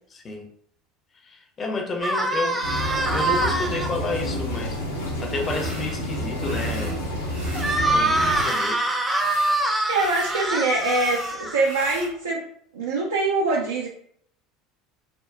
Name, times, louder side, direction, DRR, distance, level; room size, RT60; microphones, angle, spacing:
voice 1, 0.1-0.4 1.2-2.6 3.1-7.0 7.9-8.9, left 3 dB, 30° left, 3 dB, 0.6 m, -31 dB
sound 1, 2.0-3.9 7.5-11.9, right 2 dB, 15° right, 0.5 m, -24 dB
sound 2, 2.6-8.4, equal, 75° left, 0.6 m, -29 dB
sound 3, 5.4-6.0 6.4-7.0 7.3-8.8 9.0-12.1, right 1 dB, 90° right, 1.3 m, -40 dB
voice 2, 9.6-12.4 12.7-13.9, right 2 dB, 70° right, -2 dB, 0.4 m, -24 dB
3.5 x 2.2 x 2.2 m, 0.64 s
figure-of-eight pair, 70°, 0 cm